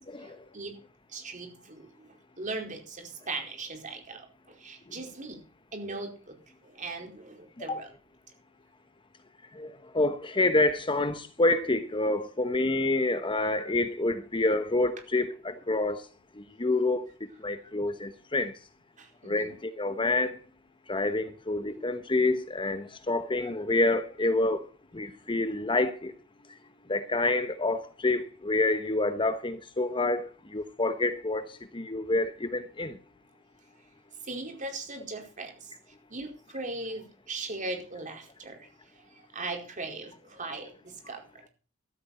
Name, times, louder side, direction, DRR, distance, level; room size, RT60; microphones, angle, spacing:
voice 1, 0.2-0.7 1.1-1.9 2.4-5.4 5.7-6.3 6.6-7.9 19.0-19.5 34.3-35.5 36.1-38.6 39.3-40.7 41.1-41.2, right 3 dB, 40° right, 4.8 m, -38 dB
voice 2, 9.5-16.0 16.4-17.1 17.4-18.5 19.2-20.3 20.9-24.7 24.9-26.1 26.9-33.0, left 2 dB, 25° left, 1.0 m, -28 dB
14.5 x 12.5 x 4.3 m
head